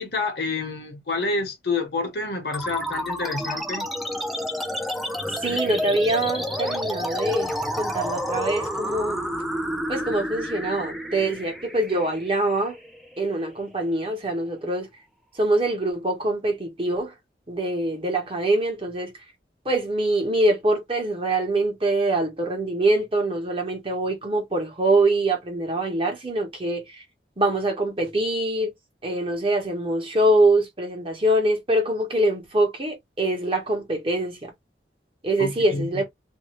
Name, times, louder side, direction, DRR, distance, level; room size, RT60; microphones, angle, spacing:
voice 1, 0.0-3.9 35.4-36.0, left 3 dB, 65° left, 1.0 m, -28 dB
sound 1, 2.5-13.5, equal, ahead, 0.5 m, -30 dB
voice 2, 5.4-9.2 9.9-12.8 13.2-14.9 15.4-17.1 17.5-19.1 19.6-27.0 27.4-28.7 29.0-34.5 35.2-36.0, right 1 dB, 30° right, 1.1 m, -24 dB
2.7 x 2.3 x 2.9 m
head